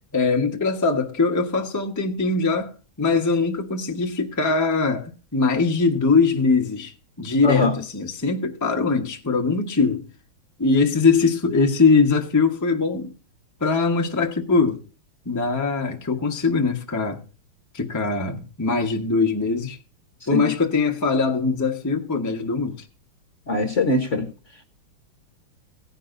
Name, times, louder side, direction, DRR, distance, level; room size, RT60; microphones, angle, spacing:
voice 1, 0.1-10.1 10.6-13.1 13.6-14.8 15.2-17.2 17.7-19.8 20.3-22.8, left 4 dB, 10° left, 0.9 m, -22 dB
voice 2, 7.4-7.8 20.3-20.5 23.5-24.3, left 2 dB, 40° left, 1.2 m, -21 dB
17.0 x 9.8 x 2.6 m
omnidirectional pair, 2.4 m